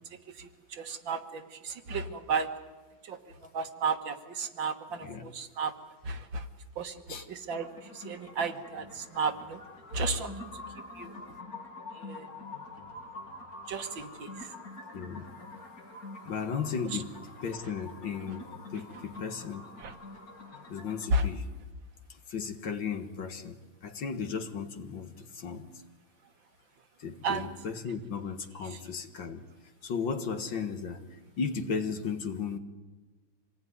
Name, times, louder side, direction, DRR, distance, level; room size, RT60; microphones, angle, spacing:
voice 1, 0.4-2.5 3.1-3.2 3.5-5.7 6.1-6.4 6.8-7.7 7.9-9.6 9.9-10.5 11.0-11.1 12.0-12.3 13.7-14.5 19.8-19.9 21.1-21.2 27.2-27.5, right 4 dB, 65° right, 7 dB, 2.1 m, -33 dB
voice 2, 5.0-5.3 7.1-7.3 11.3-11.4 14.9-15.3 16.2-19.7 20.7-21.5 22.1-25.8 27.0-32.6, left 5 dB, 65° left, 7 dB, 2.2 m, -36 dB
sound 1, 7.5-21.1, left 2 dB, 45° left, 2.9 m, -46 dB
26.0 x 18.5 x 9.6 m, 1.2 s
omnidirectional pair, 2.3 m